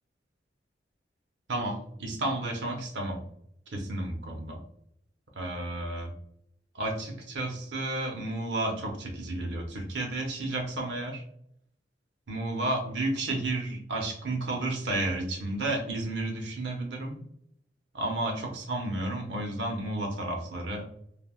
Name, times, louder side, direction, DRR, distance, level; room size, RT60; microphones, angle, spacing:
voice 1, 1.5-3.2 3.7-4.6 5.3-6.1 6.7-11.2 12.3-17.2 17.9-20.8, right 2 dB, 80° right, 2 dB, 0.7 m, -32 dB
3.3 x 2.2 x 2.3 m, 0.73 s
head